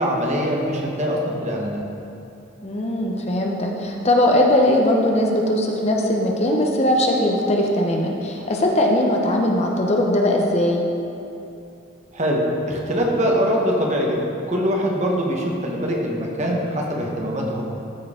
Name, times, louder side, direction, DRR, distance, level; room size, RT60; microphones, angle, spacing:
voice 1, 0.0-1.8 12.1-14.2 14.5-17.6, equal, 35° right, -1 dB, 1.0 m, -23 dB
voice 2, 2.6-10.8, left 1 dB, 30° left, 0 dB, 0.7 m, -20 dB
13.5 x 4.5 x 3.6 m, 2.7 s
head